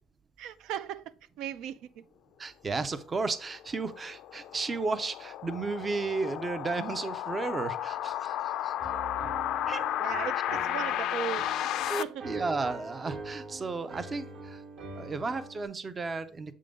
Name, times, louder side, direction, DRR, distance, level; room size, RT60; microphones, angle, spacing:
voice 1, 0.4-2.0 10.0-12.3, right 10 dB, 70° right, 0.5 m, -38 dB
voice 2, 2.4-8.7 9.7-9.8 11.9-14.6 15.0-16.5, right 3 dB, 20° right, 0.5 m, -33 dB
sound 1, 3.4-12.0, left 12 dB, 60° left, 0.4 m, -33 dB
Piano, 8.8-15.6, right 3 dB, 45° right, 1.3 m, -43 dB
7.6 x 3.8 x 5.1 m
cardioid pair, 180°, 0 cm